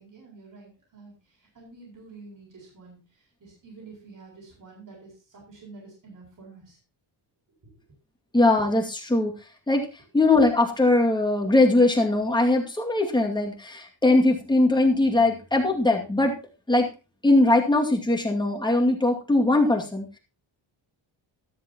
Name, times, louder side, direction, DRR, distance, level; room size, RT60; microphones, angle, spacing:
voice 1, 0.0-6.8 7.6-7.7, right 3 dB, 45° right, -2 dB, 7.6 m, -48 dB
voice 2, 8.3-9.3 9.7-9.9 10.1-16.4 16.7-16.9 17.2-20.2, left 2 dB, 10° left, 1 dB, 2.3 m, -21 dB
13.5 x 13.0 x 3.0 m, 0.31 s
cardioid pair, 160°, 46 cm